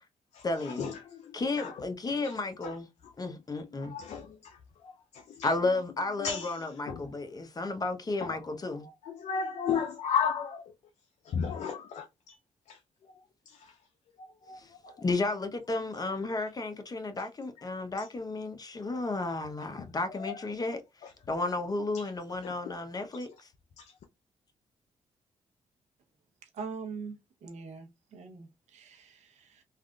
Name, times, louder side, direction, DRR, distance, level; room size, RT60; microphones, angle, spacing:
voice 1, 0.4-1.0 1.3-2.9 3.2-3.9 5.4-8.9 14.6-14.7 15.0-20.8 21.3-23.5, left 3 dB, 35° left, 0.8 m, -33 dB
voice 2, 3.8-4.3 5.4-5.5 6.2-6.5 6.9-7.0 9.1-10.6 11.3-12.3 12.7-12.8 14.5-14.6 20.2-20.3 22.4-22.5 23.8-23.9, left 7 dB, 70° left, 0.5 m, -32 dB
voice 3, 26.5-27.2 27.4-28.5 28.7-29.6, right 5 dB, 80° right, 0.8 m, -42 dB
3.4 x 2.5 x 2.3 m
cardioid pair, 65°, 12 cm